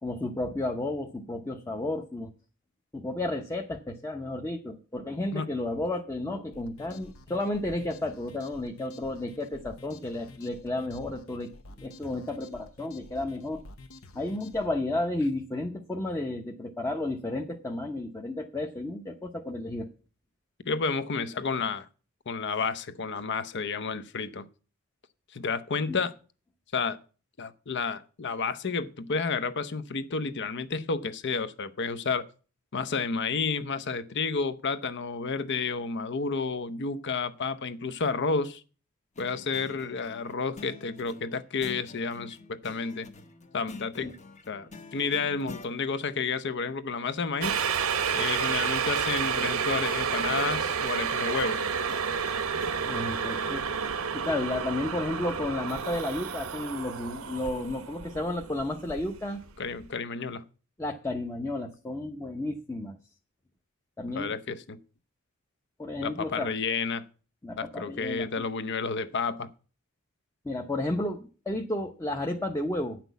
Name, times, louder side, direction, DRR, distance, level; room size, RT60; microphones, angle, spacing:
voice 1, 0.0-2.3 2.9-11.5 11.8-13.6 14.1-19.9 25.9-26.0 44.0-44.1 52.9-53.6 54.1-59.4 60.8-63.0 64.0-64.3 65.8-66.5 67.4-68.5 70.4-73.0, left 1 dB, 15° left, 0.8 m, -32 dB
sound 1, 6.5-14.7, left 2 dB, 80° left, 0.9 m, -50 dB
voice 2, 20.7-21.9 22.3-24.5 25.3-26.1 26.7-27.0 27.4-32.2 32.7-38.6 39.2-43.1 43.5-44.1 44.5-47.5 48.1-51.6 59.6-60.4 64.1-64.8 66.0-67.0 67.6-69.5, left 4 dB, 55° left, 0.7 m, -31 dB
sound 2, 39.1-45.7 49.5-52.8, left 3 dB, 35° left, 1.0 m, -48 dB
sound 3, 47.4-59.5 59.8-59.9, right 6 dB, 80° right, 0.8 m, -30 dB
9.2 x 6.0 x 8.2 m
head